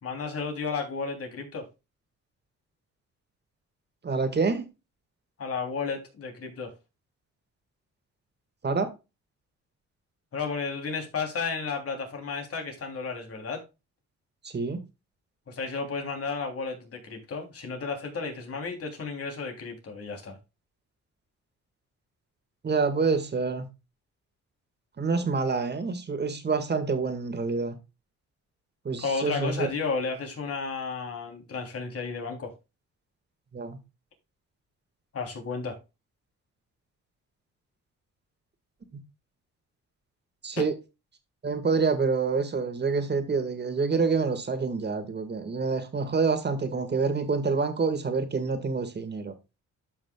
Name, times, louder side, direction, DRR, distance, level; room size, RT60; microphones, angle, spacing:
voice 1, 0.0-1.6 5.4-6.7 10.3-13.6 15.5-20.4 29.0-32.5 35.1-35.8 40.6-40.7, left 4 dB, 50° left, 3.3 m, -33 dB
voice 2, 4.0-4.7 8.6-8.9 14.4-14.8 22.6-23.7 25.0-27.8 28.9-29.7 33.5-33.8 38.9-39.0 40.4-40.7 41.4-49.3, right 4 dB, 35° right, 1.9 m, -27 dB
12.5 x 5.8 x 2.3 m
cardioid pair, 90°, 30 cm